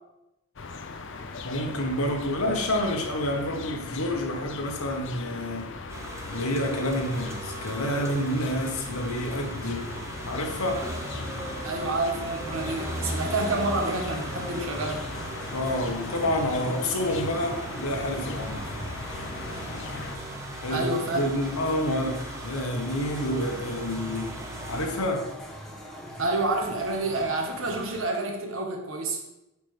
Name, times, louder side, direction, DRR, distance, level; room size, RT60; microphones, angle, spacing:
sound 1, 0.6-20.2, left 4 dB, 55° left, 0.6 m, -39 dB
voice 1, 1.4-5.7 6.3-9.9 10.3-10.9 15.5-18.7 20.6-20.9 21.2-24.3 24.7-25.3, left 1 dB, 90° left, 2 dB, 1.4 m, -28 dB
sound 2, 5.9-24.9, right 1 dB, 15° right, 0.8 m, -38 dB
voice 2, 11.6-15.0 20.7-21.2 26.2-29.2, right 2 dB, 70° right, 2 dB, 1.3 m, -28 dB
sound 3, 12.4-28.0, equal, ahead, 1.2 m, -41 dB
8.3 x 5.8 x 3.4 m, 0.90 s
head